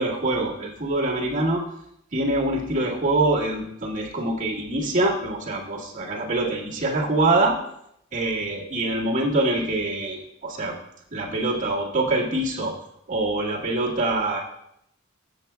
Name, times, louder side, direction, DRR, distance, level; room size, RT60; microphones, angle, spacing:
voice 1, 0.0-1.6 2.1-7.6 8.1-10.8 11.1-12.7 13.1-14.4, right 2 dB, 40° right, -6 dB, 1.9 m, -24 dB
14.5 x 6.9 x 2.3 m, 0.77 s
head